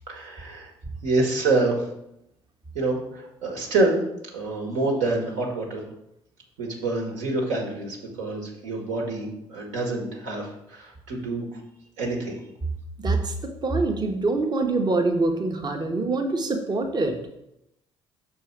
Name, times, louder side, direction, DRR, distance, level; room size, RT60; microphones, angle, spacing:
voice 1, 0.1-0.7 1.0-1.8 2.7-4.0 4.3-5.8 6.6-11.5 12.0-12.4, right 2 dB, 65° right, 0 dB, 1.6 m, -26 dB
voice 2, 13.0-13.3 13.6-17.2, right 3 dB, 30° right, 4 dB, 1.1 m, -24 dB
6.3 x 4.5 x 4.6 m, 0.82 s
figure-of-eight pair, 50°, 14 cm